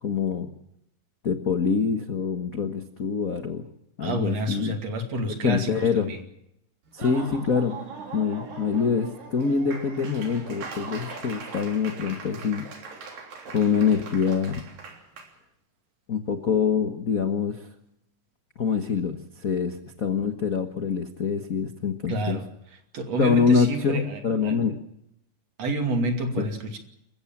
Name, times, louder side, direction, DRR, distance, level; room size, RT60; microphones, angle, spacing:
voice 1, 0.0-0.5 1.2-3.6 4.0-4.8 5.4-6.1 6.9-7.8 8.1-12.7 13.5-14.6 16.1-17.7 18.6-22.4 23.2-24.8, left 6 dB, 55° left, 8 dB, 0.9 m, -25 dB
voice 2, 4.0-6.2 22.1-22.4 22.9-24.6 25.6-26.8, right 2 dB, 50° right, 6 dB, 3.6 m, -29 dB
Laughter / Applause, 6.9-15.3, right 4 dB, 85° right, 5.1 m, -40 dB
28.0 x 15.5 x 7.3 m, 0.79 s
omnidirectional pair, 3.8 m